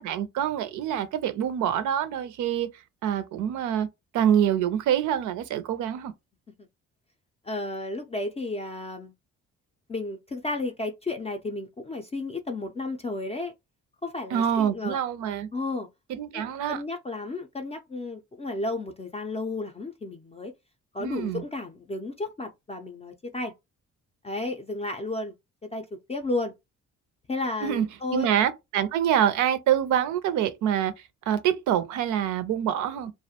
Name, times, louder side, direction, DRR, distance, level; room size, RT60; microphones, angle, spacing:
voice 1, 0.0-2.7 3.0-3.9 4.1-6.1 14.3-15.5 16.1-16.8 21.0-21.4 27.6-30.9 31.3-33.1, right 9 dB, 80° right, 0.5 m, -26 dB
voice 2, 7.4-9.1 9.9-13.5 14.0-15.0 15.5-15.9 16.3-20.5 20.9-23.5 24.2-25.3 25.7-26.5 27.3-28.3, left 2 dB, 20° left, 0.4 m, -33 dB
2.4 x 2.1 x 2.7 m
cardioid pair, 90°, 30 cm